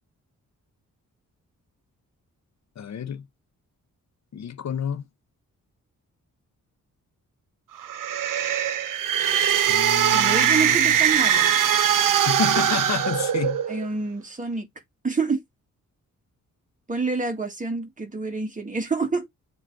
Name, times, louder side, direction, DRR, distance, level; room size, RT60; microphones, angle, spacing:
voice 1, 2.8-3.2 4.3-5.1 9.7-11.0 12.3-13.6, left 8 dB, 60° left, 0.7 m, -30 dB
sound 1, 7.8-13.9, right 9 dB, 80° right, 0.9 m, -21 dB
voice 2, 10.1-11.5 13.7-14.7 15.0-15.4 16.9-19.3, right 4 dB, 25° right, 1.9 m, -27 dB
7.7 x 3.1 x 4.6 m
wide cardioid pair, 110°, 32 cm